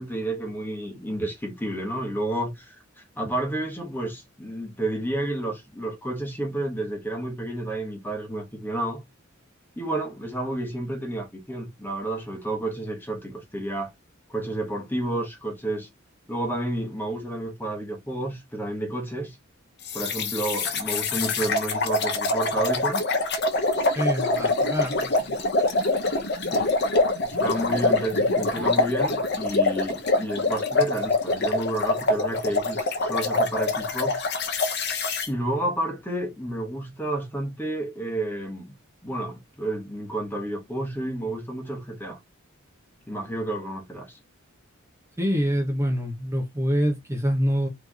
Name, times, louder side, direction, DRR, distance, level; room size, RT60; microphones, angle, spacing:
voice 1, 0.0-2.8 3.1-9.0 9.8-13.9 14.3-15.9 16.3-19.4 19.9-23.0 26.4-26.7 27.2-34.3 35.3-38.7 39.0-42.2 43.1-44.2, right 1 dB, 10° left, 1.3 m, -30 dB
sound 1, 19.9-35.3, left 2 dB, 55° left, 1.1 m, -25 dB
voice 2, 23.9-25.4 45.2-47.7, equal, 15° right, 1.1 m, -25 dB
4.4 x 3.3 x 2.9 m
head